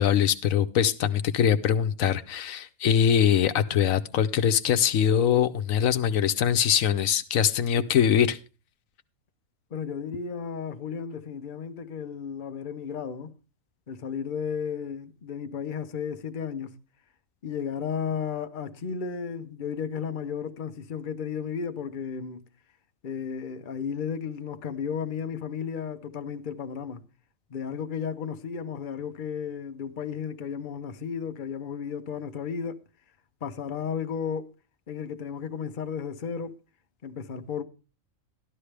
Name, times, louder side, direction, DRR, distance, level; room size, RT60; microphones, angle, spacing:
voice 1, 0.0-8.4, left 9 dB, 85° left, 1.2 m, -23 dB
voice 2, 9.7-13.3 13.9-16.8 17.4-22.4 23.0-27.0 27.5-32.8 33.4-34.5 34.9-36.6 37.0-37.6, left 7 dB, 45° left, 1.0 m, -33 dB
13.0 x 11.5 x 3.3 m
omnidirectional pair, 1.4 m